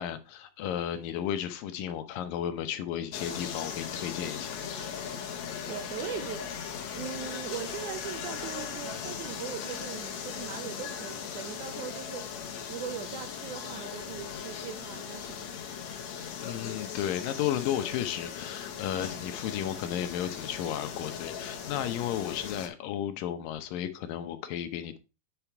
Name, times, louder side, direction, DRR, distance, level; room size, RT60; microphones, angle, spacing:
voice 1, 0.0-4.6 16.4-25.0, left 10 dB, 80° left, 2.5 m, -33 dB
sound 1, 3.1-22.7, left 7 dB, 60° left, 2.0 m, -38 dB
voice 2, 5.7-6.5 6.9-15.6, right 9 dB, 75° right, 1.9 m, -40 dB
8.7 x 4.9 x 4.5 m
omnidirectional pair, 4.1 m